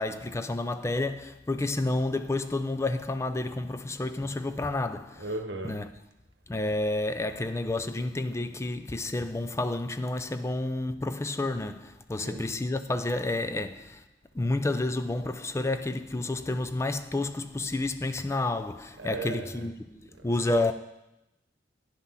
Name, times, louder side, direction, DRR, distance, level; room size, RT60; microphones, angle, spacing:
voice 1, 0.0-5.3 5.6-5.9 6.5-14.0 14.3-20.7, left 2 dB, 15° left, 0.4 m, -30 dB
voice 2, 5.2-5.8 12.2-12.5 19.0-19.7 20.2-20.7, right 2 dB, 70° right, 1.1 m, -36 dB
10.0 x 5.8 x 5.6 m
head